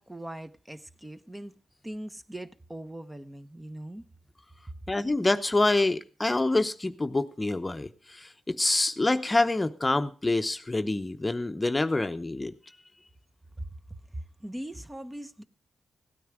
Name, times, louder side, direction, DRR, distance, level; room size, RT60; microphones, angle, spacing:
voice 1, 0.0-1.6 1.8-4.0 4.7-4.8 13.6-15.4, right 1 dB, 15° right, 1.0 m, -40 dB
voice 2, 4.9-12.5, left 2 dB, 25° left, 0.8 m, -26 dB
16.5 x 9.3 x 4.8 m
cardioid pair, 55°, 0 cm